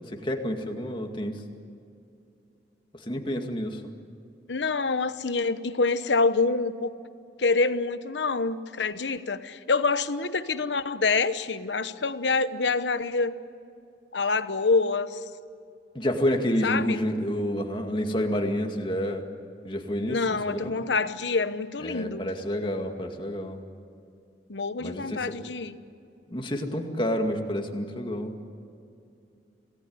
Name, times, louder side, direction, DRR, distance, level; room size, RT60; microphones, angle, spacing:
voice 1, 0.1-1.4 3.0-3.9 15.9-19.3 19.6-20.7 21.8-23.6 24.8-25.4 26.3-28.3, equal, 30° left, 4 dB, 2.1 m, -29 dB
voice 2, 4.5-6.9 7.4-13.3 14.1-15.2 16.6-17.0 20.1-22.3 24.5-25.8, left 4 dB, 85° left, 12 dB, 1.0 m, -26 dB
27.0 x 18.5 x 9.6 m, 2.6 s
head